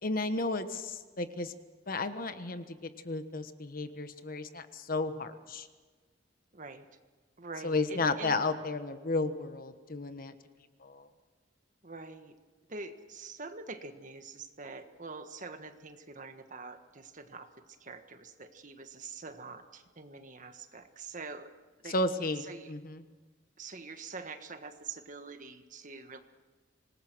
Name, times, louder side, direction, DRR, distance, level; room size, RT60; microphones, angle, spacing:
voice 1, 0.0-1.5 1.9-5.7 7.6-10.3 10.8-11.1 21.8-23.0, left 2 dB, 50° left, 9 dB, 1.3 m, -33 dB
voice 2, 6.5-6.8 7.4-8.4 11.8-12.3 12.7-17.5 17.8-21.5 21.8-21.9 22.5-22.7 23.6-26.2, right 4 dB, 45° right, 8 dB, 1.5 m, -45 dB
26.5 x 20.0 x 6.2 m, 1.4 s
head